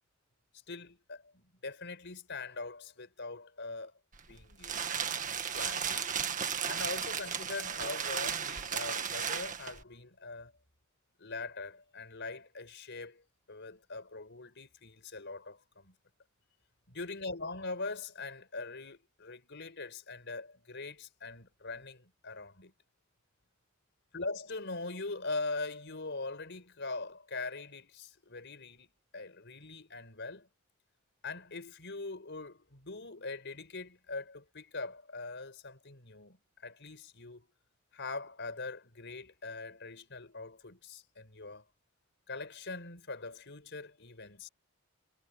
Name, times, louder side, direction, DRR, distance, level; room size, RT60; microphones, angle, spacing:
voice 1, 0.7-3.9 4.3-4.8 5.5-6.1 6.6-10.5 11.2-13.2 13.5-16.0 16.9-22.7 24.1-28.9 29.1-30.5 31.2-37.5 37.9-41.6 42.3-44.5, left 3 dB, 55° left, 5.2 m, -42 dB
sound 1, 4.1-9.8, right 7 dB, 40° right, 1.8 m, -35 dB
head